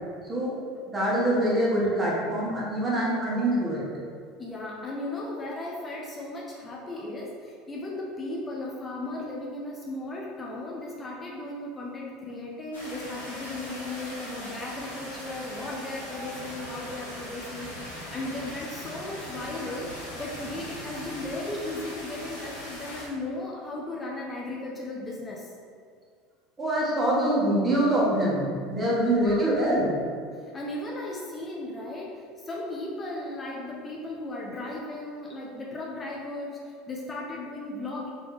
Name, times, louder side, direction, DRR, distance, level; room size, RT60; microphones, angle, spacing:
voice 1, 0.2-0.5 0.9-3.8 26.6-30.0, right 1 dB, 25° right, -5 dB, 1.5 m, -24 dB
voice 2, 4.4-25.5 29.0-29.5 30.4-38.1, left 2 dB, 25° left, -3 dB, 0.7 m, -36 dB
sound 1, 12.7-23.1, equal, 90° left, 1.3 m, -40 dB
3.9 x 3.6 x 3.4 m, 2.1 s
hypercardioid pair, 75°, 0 cm